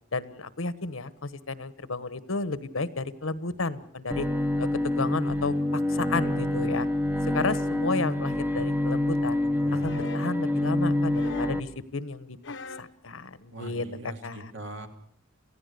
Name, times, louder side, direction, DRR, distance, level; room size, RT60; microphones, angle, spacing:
voice 1, 0.1-4.3 4.6-6.9 7.3-9.4 9.8-12.4 12.8-14.5, left 3 dB, 80° left, 15 dB, 1.3 m, -32 dB
Bowed string instrument, 4.1-11.6, left 1 dB, 10° right, 1.0 m, -27 dB
sound 1, 9.8-10.3 11.1-11.7 12.4-13.0 14.2-14.3, left 2 dB, 60° left, 1.0 m, -39 dB
voice 2, 13.5-14.9, right 2 dB, 60° right, 5 dB, 2.7 m, -41 dB
27.5 x 15.5 x 6.8 m, 0.65 s
head